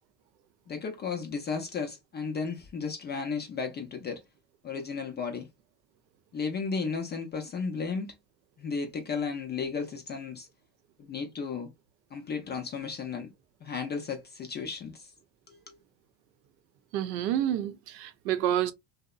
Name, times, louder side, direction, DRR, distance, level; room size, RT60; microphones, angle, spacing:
voice 1, 0.7-4.2 4.6-5.5 6.3-8.2 8.6-10.5 11.0-11.7 12.1-13.3 13.6-15.1 15.5-15.8, left 5 dB, 25° left, 0.3 m, -34 dB
voice 2, 16.9-18.7, right 11 dB, 90° right, 0.6 m, -28 dB
2.7 x 2.0 x 2.2 m
supercardioid pair, 95°, 49 cm